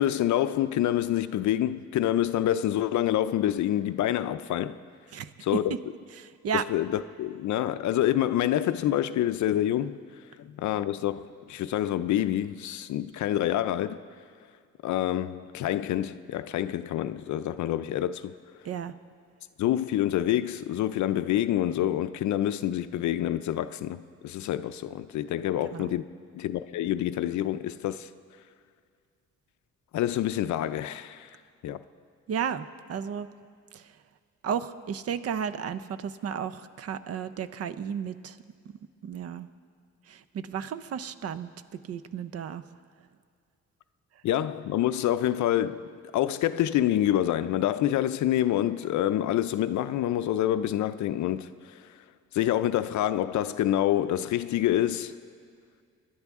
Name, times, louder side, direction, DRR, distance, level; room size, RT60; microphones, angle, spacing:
voice 1, 0.0-4.8 5.4-5.8 6.5-10.0 10.4-14.0 14.8-18.3 19.6-26.0 26.3-28.1 29.9-31.3 31.6-31.8 44.2-51.5 52.3-55.1, left 12 dB, 75° left, 0.5 m, -27 dB
voice 2, 6.2-6.6 18.6-18.9 25.7-25.9 32.3-33.3 33.7-33.8 34.4-38.3 39.0-39.5 40.1-41.5 41.9-42.6, right 7 dB, 55° right, 0.6 m, -33 dB
25.0 x 11.0 x 3.6 m
cardioid pair, 150°, 30 cm